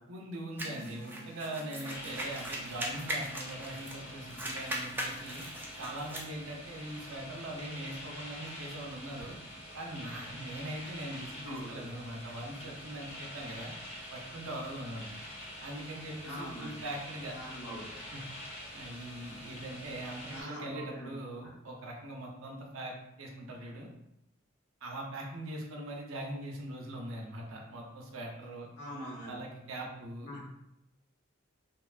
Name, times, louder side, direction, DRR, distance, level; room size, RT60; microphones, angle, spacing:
voice 1, 0.1-5.4 5.8-9.4 9.7-13.7 14.1-15.2 15.6-17.3 18.1-18.2 18.7-23.9 24.8-28.7 29.3-30.4, right 1 dB, 70° right, 1 dB, 0.5 m, -41 dB
sound 1, 0.6-7.6, equal, 85° left, 0.6 m, -54 dB
sound 2, 0.6-4.0 4.3-6.3, right 1 dB, 10° right, 0.3 m, -39 dB
sound 3, 1.9-20.4, equal, 30° left, 0.6 m, -46 dB
voice 2, 11.3-11.8 16.2-16.7 17.3-18.0 20.3-21.1 28.8-29.4 30.2-30.4, equal, 60° left, -7 dB, 1.5 m, -42 dB
2.9 x 2.1 x 2.3 m, 0.85 s
head